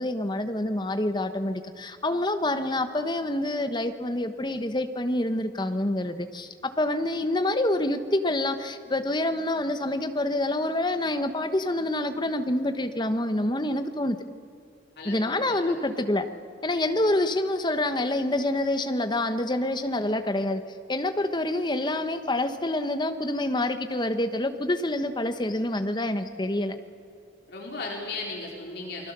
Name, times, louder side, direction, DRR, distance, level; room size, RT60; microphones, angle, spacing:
voice 1, 0.0-14.2 15.0-16.3 16.6-20.6 20.9-26.8, left 1 dB, 25° left, 8 dB, 1.2 m, -27 dB
voice 2, 15.0-15.8 27.5-29.1, left 3 dB, 55° left, -1 dB, 4.0 m, -36 dB
29.0 x 21.0 x 6.9 m, 2.5 s
head